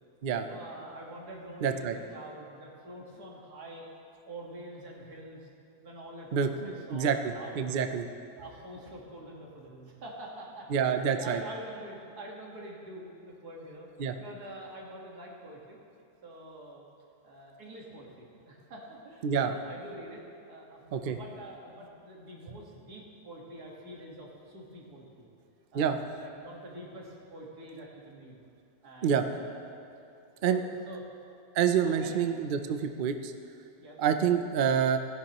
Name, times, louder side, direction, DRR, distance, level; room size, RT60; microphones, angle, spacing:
voice 1, 0.4-3.9 4.3-5.5 5.8-7.7 8.4-13.9 14.2-15.8 16.2-16.8 17.2-25.3 25.7-28.4 28.8-29.8 30.5-31.0 31.8-32.2 33.8-34.0, right 1 dB, 85° right, -2 dB, 2.2 m, -46 dB
voice 2, 1.6-1.9 6.3-8.0 10.7-11.4 14.0-14.1 19.2-19.5 20.9-21.2 25.7-26.0 29.0-29.2 30.4-30.6 31.6-33.3 34.0-35.0, right 7 dB, 65° right, 7 dB, 0.5 m, -27 dB
16.5 x 11.0 x 3.0 m, 2.6 s
omnidirectional pair, 1.6 m